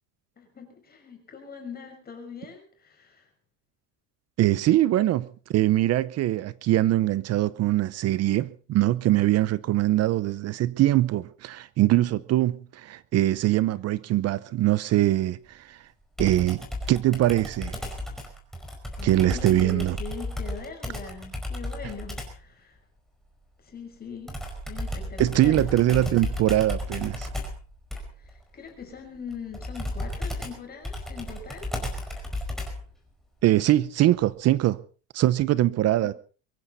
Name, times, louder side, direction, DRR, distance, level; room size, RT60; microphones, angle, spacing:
voice 1, 0.4-3.3 19.0-22.9 23.6-24.4 24.7-26.2 28.1-32.3 36.0-36.1, left 5 dB, 25° left, 5.9 m, -41 dB
voice 2, 4.4-15.8 16.2-16.6 16.9-17.8 19.0-20.0 25.2-27.3 33.4-34.8 35.1-36.1, right 14 dB, 40° right, 0.7 m, -22 dB
Computer keyboard, 16.2-22.4 24.3-32.9, left 1 dB, ahead, 4.8 m, -34 dB
23.0 x 15.0 x 4.1 m
cardioid pair, 145°, 39 cm